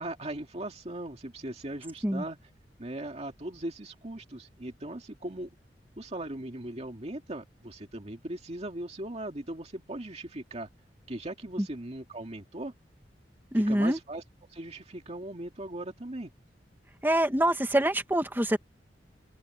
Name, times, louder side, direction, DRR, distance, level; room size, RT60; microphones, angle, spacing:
voice 1, 0.0-2.4 2.8-5.5 6.0-10.7 11.1-12.7 13.5-14.2 14.5-16.3, right 1 dB, 40° right, 2.3 m, -39 dB
voice 2, 13.5-14.0 17.0-18.6, right 1 dB, 10° right, 1.8 m, -25 dB
head